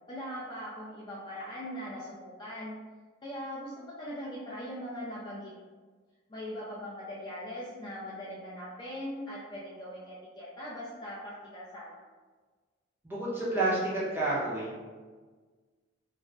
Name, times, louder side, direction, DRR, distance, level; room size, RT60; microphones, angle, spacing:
voice 1, 0.0-2.8 3.2-5.5 6.3-12.0, equal, 25° left, -7 dB, 0.4 m, -40 dB
voice 2, 13.0-14.8, right 2 dB, 10° right, -8 dB, 0.7 m, -30 dB
2.4 x 2.1 x 3.3 m, 1.4 s
head